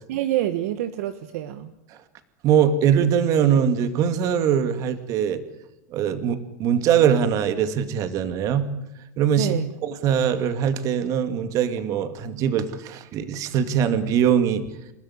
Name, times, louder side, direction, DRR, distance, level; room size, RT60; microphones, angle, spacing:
voice 1, 0.1-1.7 9.4-9.8, right 12 dB, 70° right, 11 dB, 1.5 m, -27 dB
voice 2, 2.4-5.4 5.9-8.7 9.2-9.5 9.8-14.6, right 8 dB, 40° right, 10 dB, 2.3 m, -22 dB
28.5 x 13.5 x 9.8 m, 0.92 s
supercardioid pair, 130°, 8 cm